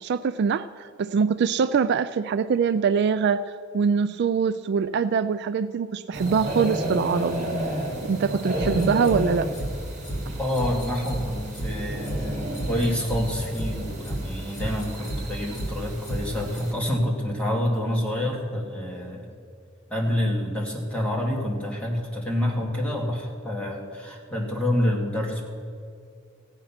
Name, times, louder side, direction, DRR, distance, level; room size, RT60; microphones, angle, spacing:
voice 1, 0.0-3.4 3.7-7.3 8.0-9.5, right 6 dB, 55° right, 13 dB, 0.3 m, -23 dB
sound 1, 6.1-16.7, right 1 dB, 35° right, 2.6 m, -32 dB
sound 2, 8.6-9.2 9.5-9.7 10.0-10.2 10.5-11.2 11.5-11.7 12.0-12.2 12.5-13.2 13.5-13.7 14.0-14.2 14.5-15.2 15.5-15.7 16.0-16.2 16.5-16.6, right 1 dB, 50° left, 3.8 m, -31 dB
voice 2, 10.4-19.3 19.9-25.5, left 1 dB, 5° left, -3 dB, 2.2 m, -27 dB
15.5 x 8.8 x 5.8 m, 2.4 s
head